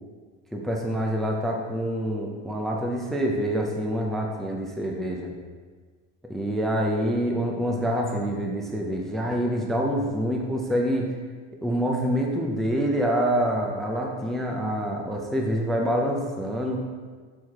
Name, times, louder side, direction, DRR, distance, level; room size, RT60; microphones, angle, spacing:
voice 1, 0.5-5.3 6.3-11.1 11.6-16.8, equal, ahead, 0 dB, 0.4 m, -26 dB
6.4 x 3.6 x 4.6 m, 1.5 s
cardioid pair, 140°, 37 cm